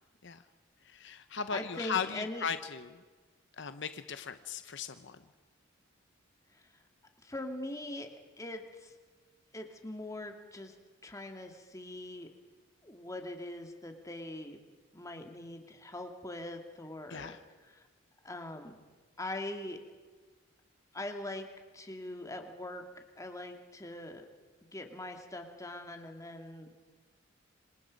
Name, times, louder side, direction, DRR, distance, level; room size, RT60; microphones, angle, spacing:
voice 1, 0.9-2.8 3.6-5.2 17.1-17.4, left 6 dB, 60° left, 10 dB, 0.8 m, -37 dB
voice 2, 1.5-2.5 6.5-6.7 7.2-8.1 8.4-9.0 9.5-10.8 11.0-12.3 12.8-14.6 14.9-17.9 18.2-18.8 19.2-19.8 20.9-21.5 21.7-24.3 24.7-26.7, left 1 dB, 15° left, 4 dB, 2.2 m, -42 dB
27.0 x 25.5 x 5.3 m, 1.4 s
head